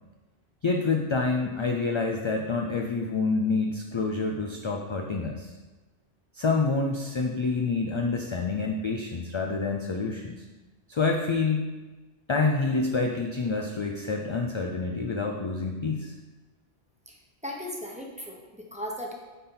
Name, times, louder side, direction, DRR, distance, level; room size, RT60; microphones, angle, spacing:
voice 1, 0.6-5.5 6.3-10.4 10.9-11.7 12.3-16.1, left 4 dB, 40° left, 1 dB, 0.4 m, -27 dB
voice 2, 17.1-19.1, equal, 5° right, -2 dB, 1.0 m, -37 dB
9.0 x 4.3 x 3.9 m, 1.2 s
omnidirectional pair, 1.1 m